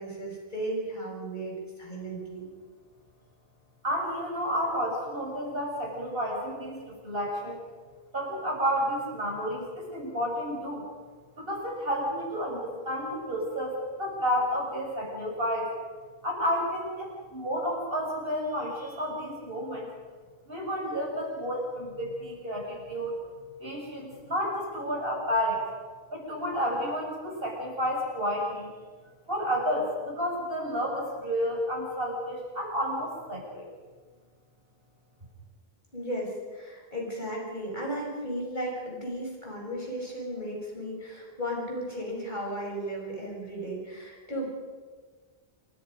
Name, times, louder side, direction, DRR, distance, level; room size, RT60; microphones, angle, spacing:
voice 1, 0.0-2.5 35.9-44.4, right 1 dB, 50° left, -1 dB, 6.0 m, -35 dB
voice 2, 3.8-7.6 8.1-10.8 11.4-15.7 16.2-19.9 20.5-23.1 23.6-25.7 26.1-28.7 29.3-33.7, equal, 65° right, -2 dB, 7.2 m, -31 dB
28.0 x 23.5 x 5.3 m, 1.5 s
omnidirectional pair, 1.0 m